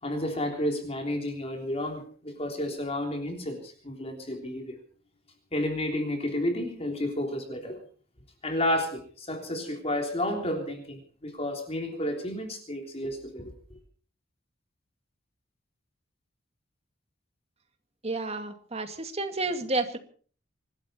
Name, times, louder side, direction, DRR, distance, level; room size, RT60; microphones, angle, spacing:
voice 1, 0.0-4.8 5.5-7.8 8.4-13.8, left 1 dB, 30° left, 3 dB, 3.4 m, -31 dB
voice 2, 18.0-20.0, right 2 dB, 35° right, 6 dB, 2.2 m, -31 dB
26.0 x 12.5 x 4.4 m, 0.43 s
head